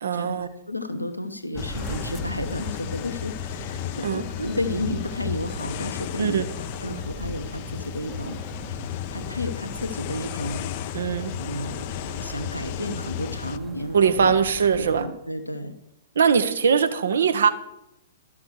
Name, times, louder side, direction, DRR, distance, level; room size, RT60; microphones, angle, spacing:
voice 1, 0.0-0.5 4.0-4.3 6.2-6.4 10.9-11.3 13.9-15.1 16.1-17.5, right 6 dB, 60° right, 10 dB, 0.9 m, -21 dB
voice 2, 0.7-6.4 6.8-8.4 8.7-10.6 11.4-14.3 14.7-15.7, left 1 dB, 85° left, 7 dB, 1.0 m, -32 dB
sound 1, 1.5-15.0, right 3 dB, 10° right, 0.9 m, -40 dB
sound 2, 1.6-13.6, left 11 dB, 40° left, 0.5 m, -34 dB
12.5 x 6.1 x 6.4 m, 0.85 s
figure-of-eight pair, 110°, 0 cm